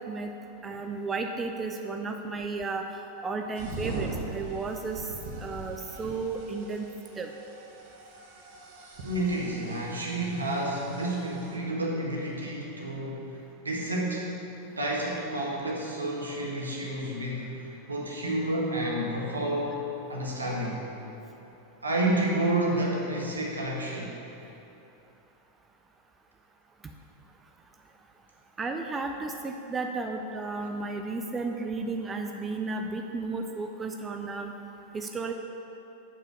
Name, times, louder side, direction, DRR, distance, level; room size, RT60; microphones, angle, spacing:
voice 1, 0.6-2.8 3.2-5.1 5.4-6.9 7.2-7.3 28.6-34.5 34.9-35.3, right 3 dB, 15° right, 4 dB, 0.5 m, -33 dB
sound 1, 3.6-11.5, right 2 dB, 50° right, 1.2 m, -41 dB
voice 2, 9.0-13.2 13.6-14.3 14.8-19.8 20.1-20.8 21.8-24.1, right 1 dB, 75° right, -2 dB, 1.5 m, -30 dB
7.1 x 5.7 x 6.6 m, 2.9 s
figure-of-eight pair, 90°, 0 cm